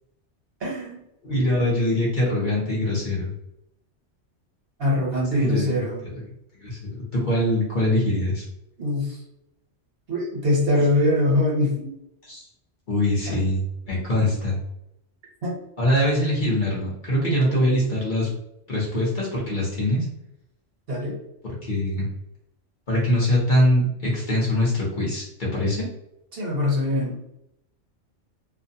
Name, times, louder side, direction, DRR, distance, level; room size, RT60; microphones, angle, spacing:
voice 1, 0.6-1.0 4.8-6.0 8.8-9.2 10.1-11.9 13.3-13.4 15.4-15.5 20.9-21.2 26.3-27.2, left 2 dB, 60° right, -3 dB, 1.0 m, -23 dB
voice 2, 1.2-3.3 5.3-5.9 6.6-8.4 12.3-12.5 12.9-14.6 15.8-18.3 18.7-20.0 21.6-22.1 22.9-25.9, left 1 dB, 45° left, -5 dB, 1.0 m, -23 dB
2.5 x 2.1 x 2.7 m, 0.83 s
omnidirectional pair, 1.2 m